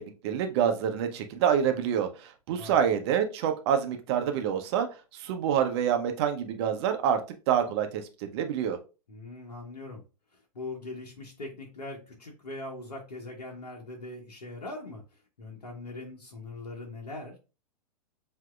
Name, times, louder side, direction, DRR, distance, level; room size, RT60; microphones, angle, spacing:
voice 1, 0.0-4.9 5.1-7.2 7.5-8.8, right 8 dB, 40° right, 6 dB, 0.7 m, -27 dB
voice 2, 9.1-10.0 10.3-17.3, left 2 dB, 70° left, 0 dB, 1.1 m, -41 dB
7.3 x 2.7 x 2.3 m, 0.31 s
figure-of-eight pair, 100°, 20 cm